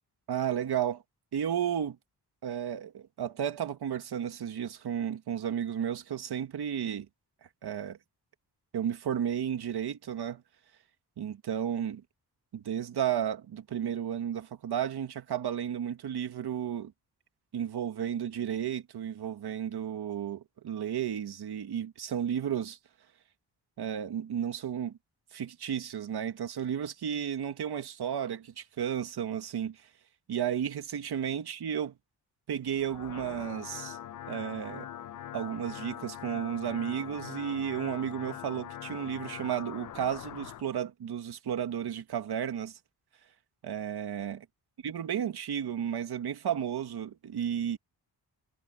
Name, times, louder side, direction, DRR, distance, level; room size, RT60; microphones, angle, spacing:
voice 1, 0.3-1.0 1.3-2.0 2.4-7.1 7.6-8.0 8.7-10.4 11.2-12.0 12.5-16.9 17.5-22.8 23.8-25.0 25.3-29.9 30.3-32.0 32.5-34.0 34.3-34.9 35.3-42.8 43.6-44.5 44.8-47.8, right 9 dB, 75° right, 2.1 m, -33 dB
sound 1, 32.7-40.6, left 11 dB, 55° left, 0.6 m, -43 dB
wide cardioid pair, 140°, 39 cm